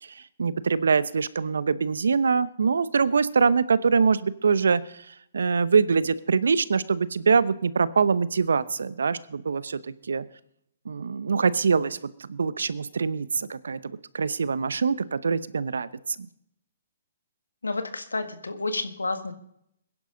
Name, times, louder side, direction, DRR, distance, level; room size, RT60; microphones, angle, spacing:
voice 1, 0.0-9.8 10.1-10.3 10.8-13.8 14.1-16.3, right 5 dB, 75° right, 17 dB, 0.8 m, -24 dB
voice 2, 17.6-19.3, left 3 dB, 85° left, 8 dB, 1.6 m, -30 dB
21.5 x 11.0 x 3.9 m, 0.74 s
figure-of-eight pair, 130°, 0 cm